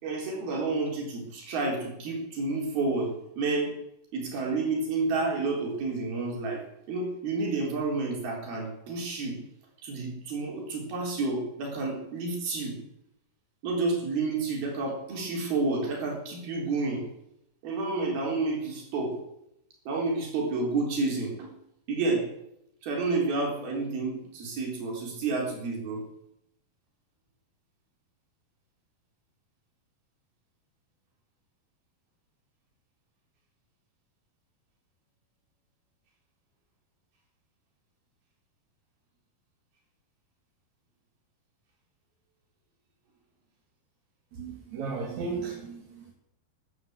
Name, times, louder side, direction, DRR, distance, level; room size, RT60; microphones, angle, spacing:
voice 1, 0.0-3.7 4.1-6.6 6.9-9.4 9.8-12.8 13.6-17.1 17.6-19.2 19.9-21.5 21.9-22.3 22.8-26.0, right 3 dB, 80° right, 0 dB, 5.8 m, -30 dB
voice 2, 44.4-46.1, right 4 dB, 55° right, 0 dB, 3.3 m, -35 dB
14.0 x 11.5 x 8.1 m, 0.80 s
omnidirectional pair, 4.3 m